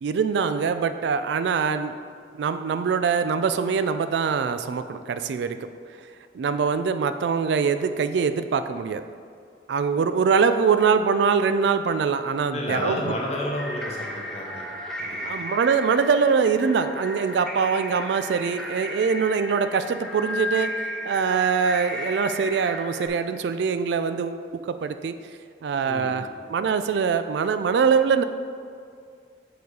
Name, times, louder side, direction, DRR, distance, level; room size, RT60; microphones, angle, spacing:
voice 1, 0.0-2.0 2.4-5.6 6.3-9.0 9.7-13.1 15.2-20.7 21.1-25.1 25.6-28.2, right 6 dB, 70° right, 10 dB, 0.3 m, -23 dB
voice 2, 12.5-14.6 15.0-15.2 25.9-26.3, left 1 dB, 35° left, -2 dB, 1.0 m, -30 dB
sound 1, 13.5-23.1, left 1 dB, 5° left, 0.6 m, -34 dB
6.9 x 4.1 x 4.7 m, 2.2 s
head